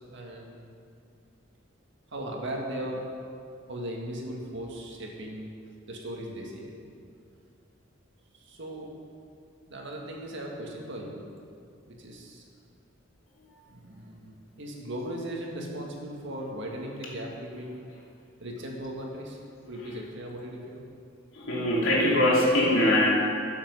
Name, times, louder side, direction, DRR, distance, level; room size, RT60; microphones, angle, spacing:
voice 1, 0.1-0.7 2.1-3.1 3.7-5.5 5.9-6.7 8.4-8.9 9.7-11.2 11.9-12.4 13.7-17.9 18.4-19.4 19.7-20.8, right 1 dB, 65° right, -1 dB, 1.8 m, -37 dB
voice 2, 21.3-23.1, left 1 dB, 85° left, -4 dB, 2.7 m, -22 dB
13.0 x 7.3 x 5.5 m, 2.4 s
head